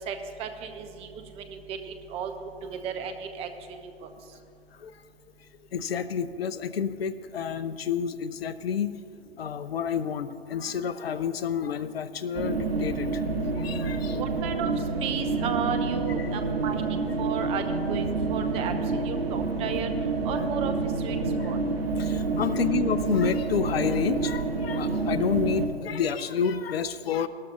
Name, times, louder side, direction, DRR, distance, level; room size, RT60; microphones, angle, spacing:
voice 1, 0.1-2.3 2.6-4.1 14.2-14.7 15.0-17.6 17.9-19.9 20.2-21.2 21.4-21.6, right 7 dB, 20° right, 7 dB, 0.7 m, -34 dB
voice 2, 5.7-9.0 9.4-13.2 13.6-14.2 21.2-21.5 22.0-27.3, left 7 dB, 70° left, 14 dB, 0.6 m, -29 dB
sound 1, 12.3-25.7, right 3 dB, 70° right, 1.5 m, -28 dB
18.0 x 13.0 x 2.3 m, 2.4 s
figure-of-eight pair, 120°, 31 cm